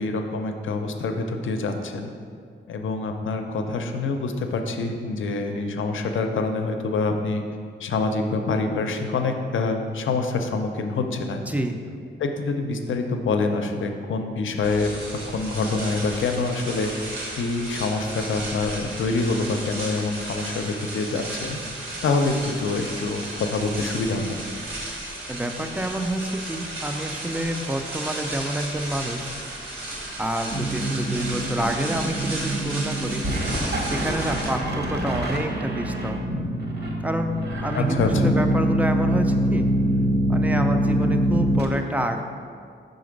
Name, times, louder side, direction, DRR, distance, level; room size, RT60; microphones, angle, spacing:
voice 1, 0.0-2.1 2.7-7.4 7.8-11.4 12.2-15.0 15.3-17.1 17.4-21.6 22.0-24.3 37.7-38.4, left 3 dB, 75° left, 5 dB, 0.6 m, -26 dB
voice 2, 11.5-11.8 25.3-29.3 30.2-33.3 33.9-36.2 37.0-37.3 37.6-39.7 40.3-42.2, right 1 dB, 5° right, 6 dB, 0.3 m, -28 dB
sound 1, 14.6-34.5, right 1 dB, 80° right, 1.5 m, -34 dB
sound 2, 30.5-41.6, right 1 dB, 55° right, 0.9 m, -24 dB
5.8 x 3.9 x 5.1 m, 2.2 s
wide cardioid pair, 160°, 20 cm